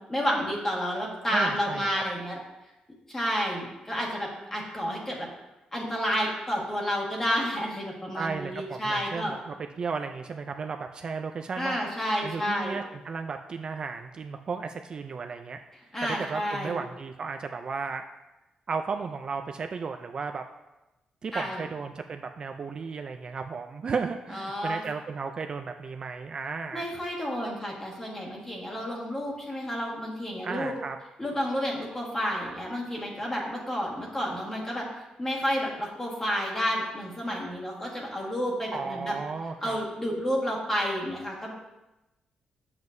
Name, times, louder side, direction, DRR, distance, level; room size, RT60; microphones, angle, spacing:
voice 1, 0.1-2.4 3.1-5.3 5.7-9.3 11.6-12.8 15.9-16.8 21.3-21.6 24.3-24.8 26.7-30.7 31.2-34.9 35.2-39.2 39.6-41.5, equal, 15° left, -3 dB, 1.6 m, -30 dB
voice 2, 1.3-2.0 8.1-11.8 12.2-15.6 16.0-18.0 18.7-20.4 21.2-26.9 30.4-31.0 38.7-39.8, right 5 dB, 40° right, 6 dB, 0.3 m, -34 dB
7.8 x 7.2 x 2.6 m, 1.0 s
wide cardioid pair, 155°, 2 cm